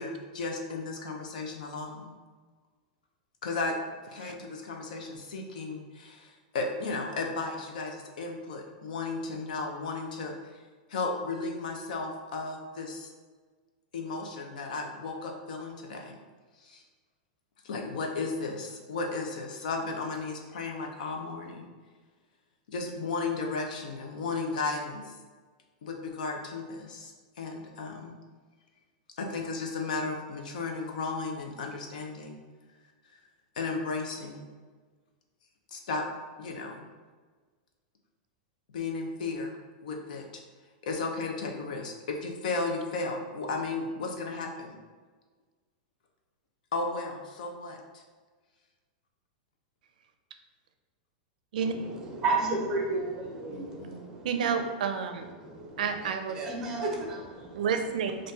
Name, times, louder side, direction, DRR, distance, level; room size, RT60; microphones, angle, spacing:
voice 1, 0.0-2.2 3.4-3.8 4.1-10.3 10.9-13.1 13.9-16.1 16.6-16.8 17.6-21.7 22.7-25.2 25.8-28.1 29.2-32.4 33.6-34.5 35.7-36.1 36.4-36.9 38.7-39.5 39.8-40.4 40.8-44.8 46.7-48.0 53.5-54.1, left 3 dB, 70° left, 2 dB, 0.7 m, -34 dB
voice 2, 51.6-54.3 55.4-55.8 56.4-57.7, right 3 dB, 15° right, -1 dB, 0.7 m, -32 dB
voice 3, 54.2-55.3 55.8-56.4 57.5-58.3, right 6 dB, 70° right, 7 dB, 0.4 m, -30 dB
5.4 x 2.6 x 2.8 m, 1.4 s
supercardioid pair, 175°, 5 cm